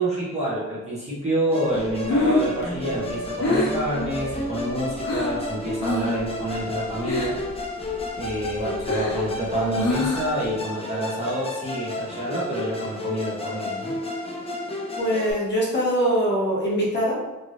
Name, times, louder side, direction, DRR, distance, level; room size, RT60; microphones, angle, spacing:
voice 1, 0.0-7.4 8.2-13.9, right 1 dB, 20° right, -7 dB, 0.8 m, -28 dB
Musical instrument, 1.5-15.3, left 2 dB, 20° left, 0.4 m, -32 dB
Breathing, 1.8-5.4 5.8-6.3 6.5-7.5 7.9-10.4, left 2 dB, 60° left, 0.6 m, -26 dB
voice 2, 15.0-17.2, equal, 35° left, -7 dB, 0.9 m, -23 dB
3.1 x 2.6 x 2.5 m, 1.1 s
wide cardioid pair, 160°, 30 cm